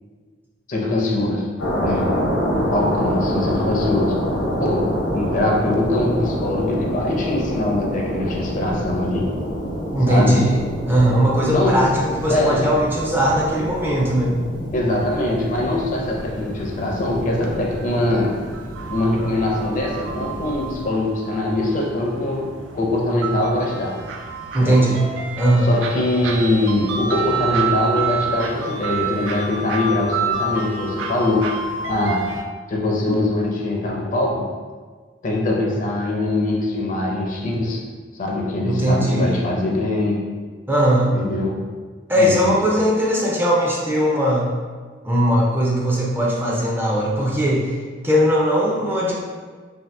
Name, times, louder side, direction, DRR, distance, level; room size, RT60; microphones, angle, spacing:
voice 1, 0.7-1.5 1.8-2.1 2.5-4.2 4.6-4.9 5.1-9.3 10.1-10.4 11.5-11.8 12.3-12.7 14.7-18.4 18.9-22.5 22.7-24.0 24.6-24.8 25.6-31.4 31.9-32.2 32.7-34.5 35.2-37.8 38.2-40.2 41.1-41.6 42.2-42.6, left 2 dB, 45° left, -1 dB, 0.5 m, -22 dB
sound 1, 1.6-20.8, equal, 75° left, 0.8 m, -27 dB
voice 2, 9.9-10.6 10.9-14.4 24.5-25.0 25.4-25.7 38.6-39.5 40.7-41.1 42.1-44.5 45.0-47.7 48.0-49.1, equal, 10° right, -4 dB, 0.4 m, -19 dB
sound 2, 14.9-32.4, right 5 dB, 85° right, 0.3 m, -29 dB
2.7 x 2.5 x 3.2 m, 1.5 s
head